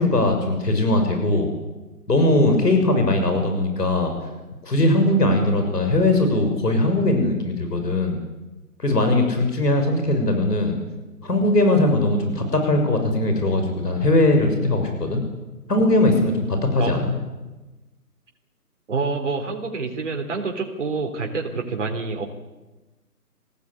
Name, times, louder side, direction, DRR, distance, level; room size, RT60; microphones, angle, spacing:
voice 1, 0.0-1.5 2.1-4.1 4.6-8.2 8.8-10.7 11.2-15.2 15.7-17.1, left 1 dB, 80° left, 5 dB, 6.8 m, -20 dB
voice 2, 18.9-22.3, right 4 dB, 45° right, 2 dB, 3.8 m, -27 dB
23.5 x 18.0 x 9.8 m, 1.1 s
figure-of-eight pair, 160°, 47 cm